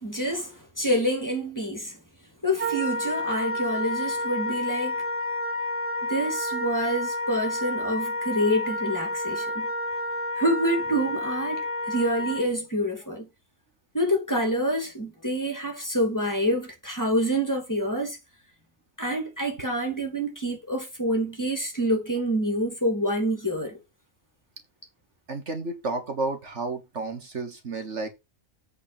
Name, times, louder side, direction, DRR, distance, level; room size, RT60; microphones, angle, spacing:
voice 1, 0.0-2.0 2.4-5.0 6.0-9.7 10.4-13.3 13.9-18.2 19.0-23.8, equal, 15° left, 2.6 m, -27 dB
Wind instrument woodwind instrument, 2.6-12.4, left 1 dB, 10° right, 1.5 m, -30 dB
voice 2, 25.3-28.1, right 3 dB, 60° right, 1.8 m, -31 dB
8.2 x 4.3 x 6.9 m
omnidirectional pair, 1.4 m